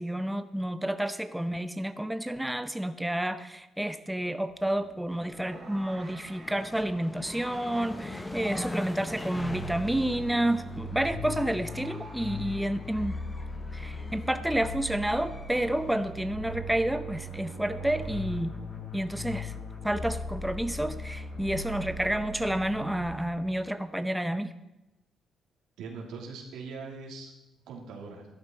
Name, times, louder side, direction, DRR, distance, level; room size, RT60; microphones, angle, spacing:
voice 1, 0.0-13.2 13.7-18.5 18.9-19.5 19.8-24.5, right 1 dB, 5° right, 11 dB, 0.6 m, -30 dB
sound 1, 4.5-8.9 9.2-9.3 10.6-14.6 16.7-19.6, right 4 dB, 60° right, 2.0 m, -54 dB
sound 2, 5.1-16.1, left 1 dB, 15° left, 1.0 m, -42 dB
sound 3, 9.3-23.5, left 2 dB, 70° left, 4.5 m, -39 dB
voice 2, 25.8-27.3 27.7-28.3, right 4 dB, 90° right, 0 dB, 2.8 m, -41 dB
13.0 x 11.5 x 4.4 m, 0.98 s
cardioid pair, 90°, 0 cm